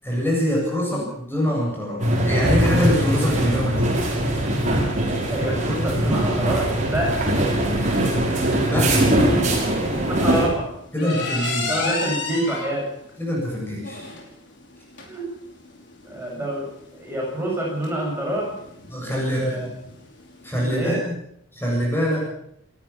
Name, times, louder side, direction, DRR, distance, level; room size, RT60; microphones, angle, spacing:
voice 1, 0.0-3.9 8.5-9.1 10.9-11.7 13.2-14.0 18.9-19.5 20.4-21.1 21.5-22.3, equal, 10° left, -2 dB, 7.5 m, -24 dB
sound 1, 2.0-10.5, right 1 dB, 35° right, 6.0 m, -21 dB
sound 2, 2.1-20.7, left 3 dB, 55° left, 5.5 m, -36 dB
voice 2, 5.3-7.4 9.9-10.7 11.3-11.4 11.7-12.9 15.0-15.3 16.0-18.5 19.3-19.7 20.6-21.0, right 1 dB, 10° right, -2 dB, 7.8 m, -27 dB
29.0 x 13.5 x 7.3 m, 0.72 s
head